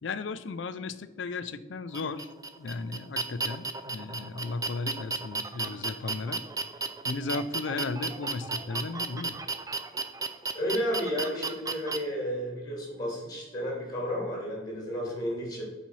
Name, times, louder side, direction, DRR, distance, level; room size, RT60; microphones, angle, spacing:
voice 1, 0.0-2.3 2.6-6.4 7.0-9.4, left 3 dB, 75° left, 13 dB, 0.5 m, -35 dB
sound 1, 1.9-12.0, right 3 dB, 20° right, 0.4 m, -34 dB
voice 2, 10.5-15.6, equal, 20° left, -3 dB, 2.7 m, -32 dB
7.4 x 4.3 x 5.6 m, 1.2 s
head